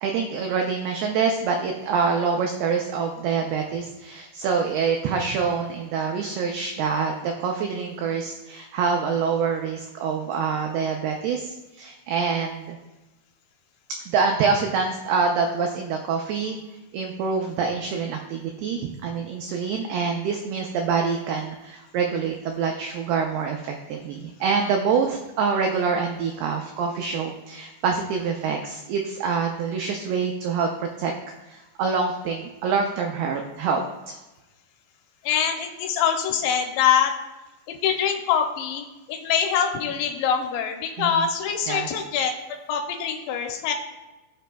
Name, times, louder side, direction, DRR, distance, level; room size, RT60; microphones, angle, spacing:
voice 1, 0.0-12.8 14.1-16.6 16.9-31.1 31.5-34.2 41.0-41.3 41.7-41.9, right 5 dB, 85° right, 2 dB, 2.2 m, -26 dB
voice 2, 35.2-37.1 37.7-42.3 42.7-43.7, left 8 dB, 85° left, 3 dB, 2.9 m, -24 dB
16.5 x 6.2 x 2.3 m, 1.1 s
omnidirectional pair, 5.4 m